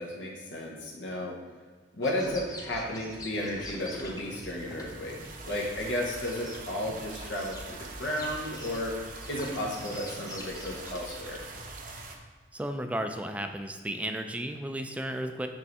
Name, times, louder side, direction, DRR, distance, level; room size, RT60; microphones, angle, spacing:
voice 1, 0.0-1.4 1.9-5.2 5.4-9.0 9.3-11.5, left 1 dB, 85° left, -2 dB, 1.0 m, -33 dB
sound 1, 2.0-6.6 7.3-7.6 8.0-11.2, left 1 dB, 20° left, 0.8 m, -44 dB
sound 2, 2.1-12.0, equal, 60° left, 1.5 m, -49 dB
sound 3, 3.8-12.2, right 4 dB, 45° right, 0.6 m, -45 dB
voice 2, 12.5-15.5, right 1 dB, 5° right, 6 dB, 0.3 m, -34 dB
5.4 x 3.2 x 5.4 m, 1.5 s
head